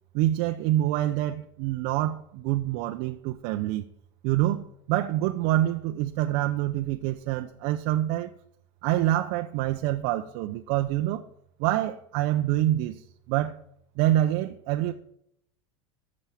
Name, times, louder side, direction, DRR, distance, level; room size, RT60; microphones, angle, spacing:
voice 1, 0.1-3.8 4.2-8.3 8.8-11.2 11.6-13.0 13.3-13.6 14.0-14.9, right 14 dB, 65° right, 4 dB, 0.8 m, -26 dB
13.5 x 6.5 x 7.2 m, 0.72 s
supercardioid pair, 105°, 17 cm